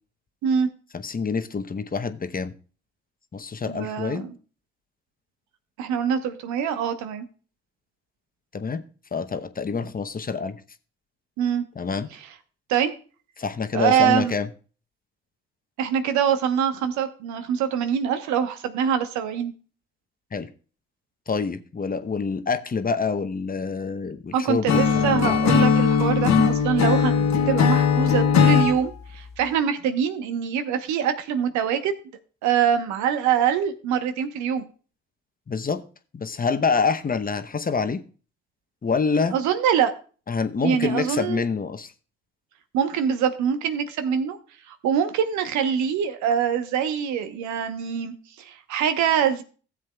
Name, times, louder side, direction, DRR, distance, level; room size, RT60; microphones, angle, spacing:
voice 1, 0.9-2.5 3.3-4.3 8.5-8.8 9.1-10.6 11.8-12.1 13.4-14.5 20.3-20.5 21.3-25.3 35.5-35.8 36.1-38.0 38.8-39.3 40.3-41.9, left 5 dB, 30° left, 10 dB, 0.9 m, -26 dB
voice 2, 3.7-4.3 5.8-7.3 11.4-11.7 12.1-12.3 12.7-12.9 13.7-14.3 15.8-19.5 24.3-32.0 32.4-34.7 39.3-39.9 40.6-41.4 42.7-44.4 44.7-49.4, right 8 dB, 70° right, 9 dB, 1.1 m, -24 dB
Acoustic guitar / Strum, 24.7-28.8, left 6 dB, 65° left, 1.3 m, -19 dB
16.0 x 7.6 x 2.3 m, 0.38 s
hypercardioid pair, 45°, 30 cm